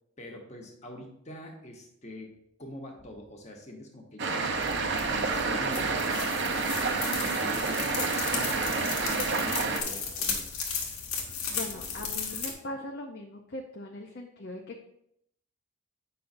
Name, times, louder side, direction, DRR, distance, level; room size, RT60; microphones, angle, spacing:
voice 1, 0.2-4.5 4.8-10.6, left 1 dB, 30° left, 1 dB, 1.1 m, -45 dB
sound 1, 4.2-9.8, right 4 dB, 55° right, 0.6 m, -29 dB
sound 2, 4.6-12.5, left 5 dB, 85° left, 1.3 m, -35 dB
voice 2, 11.5-14.8, left 2 dB, 50° left, 1 dB, 0.6 m, -40 dB
8.3 x 5.5 x 2.6 m, 0.75 s
head